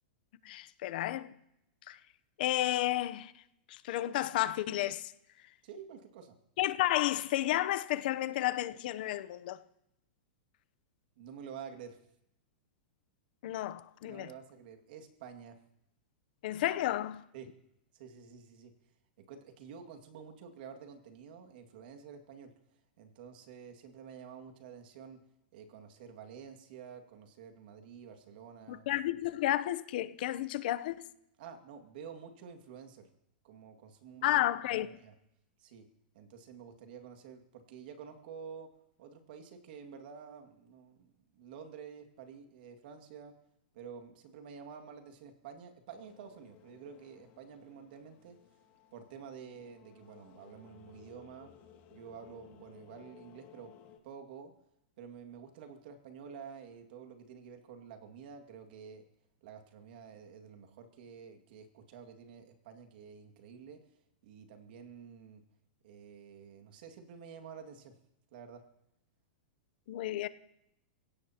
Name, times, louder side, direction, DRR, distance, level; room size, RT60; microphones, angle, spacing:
voice 1, 0.4-1.3 1.9-2.0 2.4-3.3 3.7-5.1 6.6-9.6 13.4-14.3 16.4-17.2 28.7-31.0 34.2-34.9 69.9-70.3, left 14 dB, 60° left, 0.7 m, -32 dB
voice 2, 5.6-6.4 11.2-12.0 14.0-15.6 17.3-17.5 17.9-18.7 19.2-22.5 23.0-25.2 25.5-28.9 31.4-33.1 33.4-34.4 34.8-35.1 35.6-35.9 36.1-38.7 39.0-43.4 43.7-48.4 48.9-51.5 51.9-53.7 54.0-54.5 55.0-59.1 59.4-63.8 64.2-65.4 65.8-68.0 68.3-68.7, right 7 dB, 60° right, 2.1 m, -50 dB
sound 1, 45.9-54.0, left 9 dB, 40° left, 2.3 m, -59 dB
25.5 x 16.5 x 2.9 m
supercardioid pair, 145°, 6 cm